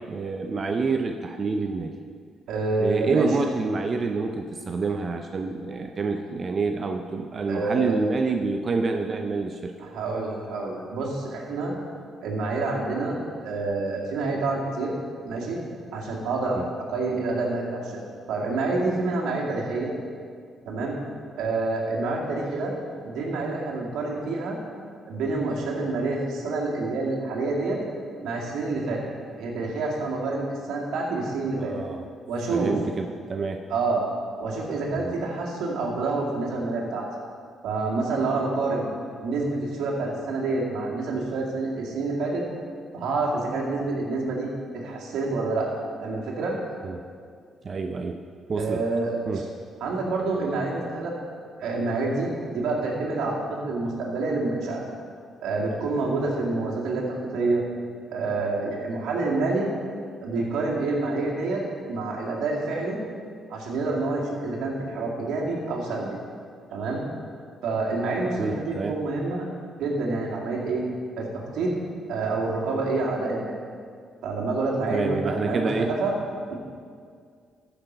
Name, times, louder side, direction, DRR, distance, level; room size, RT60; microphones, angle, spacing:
voice 1, 0.1-2.0 2.8-9.7 16.6-16.7 31.6-32.0 32.5-33.6 35.0-35.1 46.8-47.0 47.6-48.2 48.5-48.8 49.3-49.4 68.4-69.0 74.9-75.9, right 4 dB, 45° right, 5 dB, 0.6 m, -27 dB
voice 2, 2.5-3.3 7.5-7.9 9.8-11.7 12.2-13.2 13.4-14.9 15.2-15.6 15.9-18.0 18.3-19.9 20.6-21.0 21.3-22.7 23.0-24.6 25.1-27.8 28.2-29.0 29.4-31.7 32.3-32.8 33.7-34.0 34.4-37.1 37.6-38.9 39.2-42.4 42.9-44.5 44.7-45.7 46.0-46.6 48.5-49.4 49.8-51.1 51.6-54.8 55.4-57.6 58.1-59.7 60.2-61.6 61.9-63.0 63.5-66.2 66.7-67.0 67.6-69.5 69.8-70.8 71.2-71.7 72.1-73.5 74.2-76.1, right 3 dB, 75° right, -2 dB, 2.3 m, -27 dB
13.5 x 6.0 x 5.5 m, 2.2 s
supercardioid pair, 70°, 0 cm